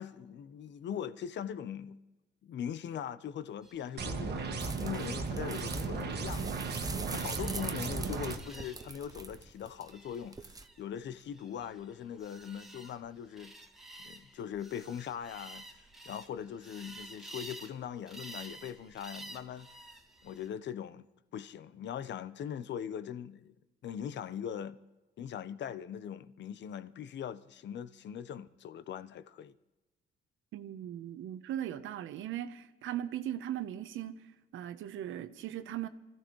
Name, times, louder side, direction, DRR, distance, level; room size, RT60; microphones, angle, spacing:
voice 1, 0.0-2.0 2.4-13.5 14.0-15.6 16.1-19.7 20.2-21.0 21.3-23.5 23.8-24.8 25.2-29.5, left 9 dB, 65° left, 0.8 m, -41 dB
sound 1, 3.6-20.5, right 2 dB, ahead, 2.2 m, -52 dB
sound 2, 4.0-8.4, right 4 dB, 55° right, 1.4 m, -36 dB
sound 3, 4.6-10.7, right 3 dB, 20° right, 0.7 m, -44 dB
voice 2, 30.5-35.9, right 11 dB, 80° right, 0.9 m, -39 dB
25.0 x 15.0 x 3.1 m
cardioid pair, 90°, 20 cm